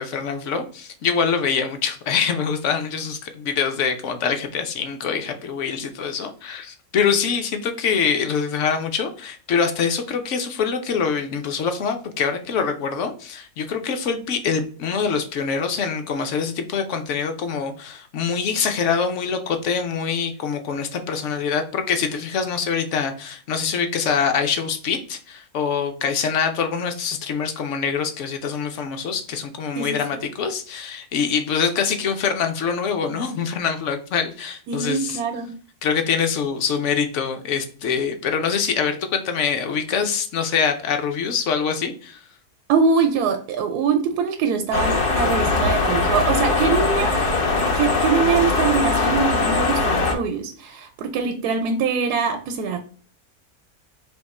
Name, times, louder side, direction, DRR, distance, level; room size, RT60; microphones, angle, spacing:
voice 1, 0.0-35.2 35.8-42.2, left 6 dB, 60° left, 7 dB, 0.9 m, -24 dB
voice 2, 34.7-35.5 42.7-47.2 47.7-52.8, right 5 dB, 80° right, 6 dB, 1.1 m, -23 dB
sound 1, 44.7-50.1, left 3 dB, 80° left, 1.7 m, -21 dB
3.6 x 2.9 x 4.1 m, 0.43 s
omnidirectional pair, 1.6 m